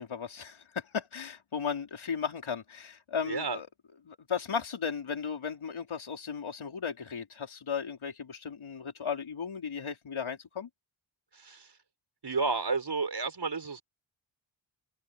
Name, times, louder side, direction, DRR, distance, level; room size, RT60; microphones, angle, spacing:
voice 1, 0.0-3.7 4.1-10.7, left 6 dB, 75° left, 5.0 m, -36 dB
voice 2, 3.2-3.6 11.3-11.7 12.2-13.8, right 4 dB, 55° right, 6.6 m, -31 dB
cardioid pair, 65°, 49 cm